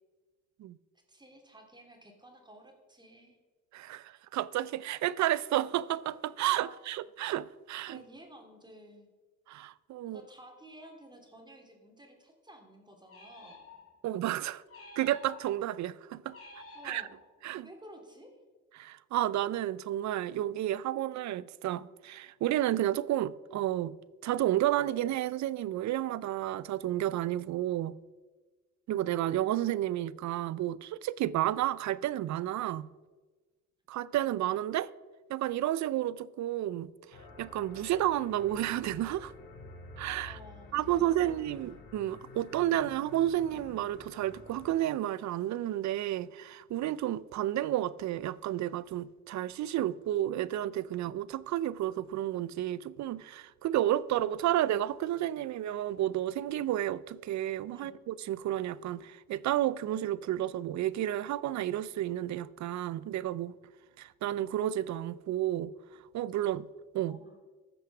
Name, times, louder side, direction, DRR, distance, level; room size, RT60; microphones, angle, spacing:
voice 1, 1.1-3.4 6.6-6.7 7.9-9.1 10.0-13.6 16.7-17.1 17.6-18.4 40.2-41.8 57.7-57.9 67.1-67.4, right 1 dB, 15° right, 2.7 m, -53 dB
voice 2, 3.7-8.0 9.5-10.2 14.0-14.6 15.0-16.4 16.8-17.0 17.4-17.7 18.8-23.9 24.2-28.0 28.9-32.9 33.9-34.9 35.3-36.9 37.4-39.3 40.0-40.4 40.7-63.5 64.0-65.7 66.1-66.7 66.9-67.2, right 13 dB, 65° right, 0.5 m, -31 dB
sound 1, 13.1-14.1 14.7-15.7 16.3-17.5, left 3 dB, 50° left, 3.3 m, -51 dB
sound 2, 37.1-44.8, left 3 dB, 85° left, 3.6 m, -50 dB
14.5 x 6.2 x 6.0 m
cardioid pair, 90°, 30 cm